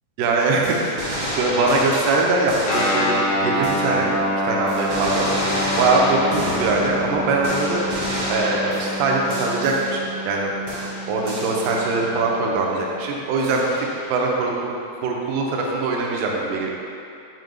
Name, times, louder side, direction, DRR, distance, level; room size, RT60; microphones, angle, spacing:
voice 1, 0.2-1.0 1.4-4.1 4.4-5.3 5.8-7.8 8.3-10.5 11.1-14.7 15.0-16.7, right 3 dB, 80° right, -1 dB, 2.0 m, -22 dB
sound 1, 0.6-4.3 4.7-10.4 10.7-12.3 13.4-14.2, equal, 65° right, 1.3 m, -29 dB
Guitar, 2.6-12.5, left 1 dB, 80° left, 1.8 m, -27 dB
7.6 x 2.9 x 5.2 m, 2.6 s
omnidirectional pair, 4.8 m